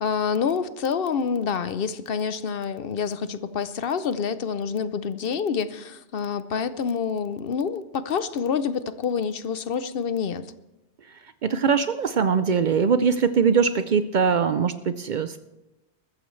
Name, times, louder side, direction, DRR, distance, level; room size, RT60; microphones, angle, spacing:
voice 1, 0.0-10.4, left 6 dB, 60° left, 13 dB, 0.8 m, -27 dB
voice 2, 11.4-15.4, right 6 dB, 55° right, 11 dB, 0.6 m, -22 dB
21.0 x 14.0 x 3.2 m, 0.97 s
omnidirectional pair, 1.1 m